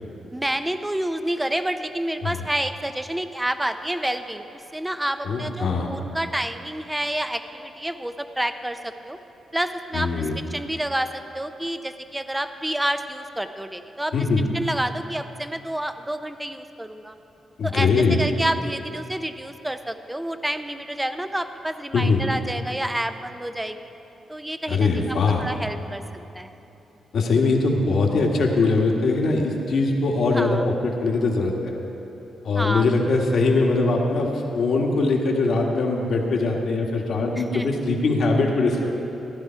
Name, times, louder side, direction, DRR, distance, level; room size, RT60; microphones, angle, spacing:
voice 1, 0.3-9.2 9.5-14.2 14.5-17.1 17.6-23.8 24.3-26.0 26.3-26.5 30.3-30.7 32.6-32.9 37.4-37.7, right 1 dB, 10° right, 9 dB, 0.6 m, -29 dB
voice 2, 5.2-5.9 9.9-10.4 14.1-14.4 17.6-18.2 21.9-22.2 24.7-25.4 27.1-31.8 32.4-34.3 34.5-38.9, left 3 dB, 65° left, 0 dB, 1.6 m, -21 dB
15.0 x 11.0 x 4.5 m, 3.0 s
cardioid pair, 90°, 0 cm